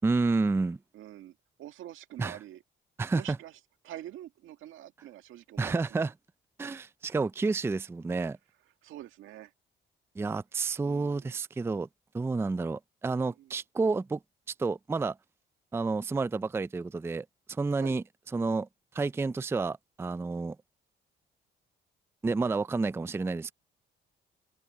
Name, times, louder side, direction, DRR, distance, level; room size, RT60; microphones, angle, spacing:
voice 1, 0.0-0.8 2.2-2.4 3.0-3.4 5.6-6.1 6.6-8.4 10.2-11.9 12.1-14.2 14.6-15.2 15.7-18.0 18.3-18.7 18.9-20.6 22.2-23.5, right 3 dB, 10° right, 0.4 m, -30 dB
voice 2, 0.9-2.6 3.1-6.1 6.6-6.8 8.8-9.5 10.8-11.4 13.2-13.6 17.8-18.0 22.4-22.5, right 13 dB, 90° right, 1.9 m, -46 dB
cardioid pair, 90°, 20 cm